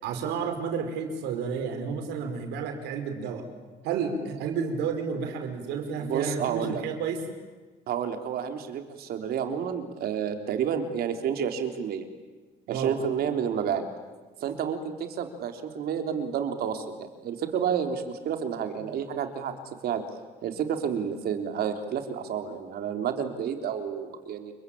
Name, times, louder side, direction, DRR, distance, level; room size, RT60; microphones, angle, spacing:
voice 1, 0.0-3.5 3.8-7.2 12.7-12.9, right 6 dB, 85° right, 6 dB, 4.9 m, -31 dB
voice 2, 6.0-6.8 7.9-12.0 12.7-13.8 14.4-19.5 19.8-20.0 20.4-24.5, right 8 dB, 65° right, 6 dB, 3.7 m, -30 dB
29.5 x 23.0 x 8.8 m, 1.3 s
cardioid pair, 110°, 17 cm